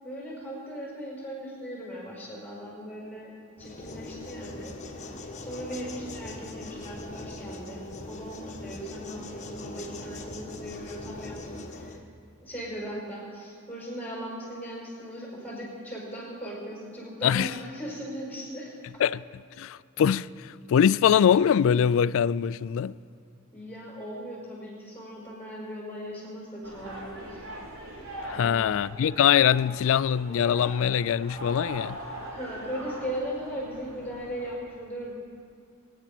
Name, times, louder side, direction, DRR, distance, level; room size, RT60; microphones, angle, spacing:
voice 1, 0.0-3.3 3.6-5.1 5.4-11.5 11.8-12.0 12.4-18.7 23.5-27.4 28.3-28.6 32.3-35.1, equal, 10° left, 5.3 m, -38 dB
sound 1, 3.6-12.0, left 2 dB, 35° left, 1.4 m, -41 dB
voice 2, 19.6-23.0 28.2-32.0, left 8 dB, 65° left, 0.3 m, -23 dB
sound 2, 26.6-34.6, right 1 dB, 80° right, 3.5 m, -41 dB
22.5 x 10.5 x 6.1 m
head